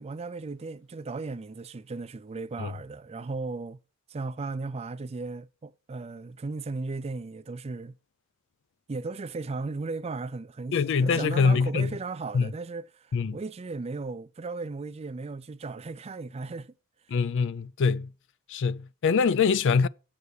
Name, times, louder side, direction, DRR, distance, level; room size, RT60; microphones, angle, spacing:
voice 1, 0.0-3.8 4.1-7.9 8.9-16.7, right 3 dB, 30° right, 0.4 m, -36 dB
voice 2, 10.7-11.9 12.3-12.5 13.1-13.4 17.1-18.1 18.5-19.9, left 5 dB, 55° left, 0.4 m, -24 dB
8.0 x 6.4 x 6.9 m
head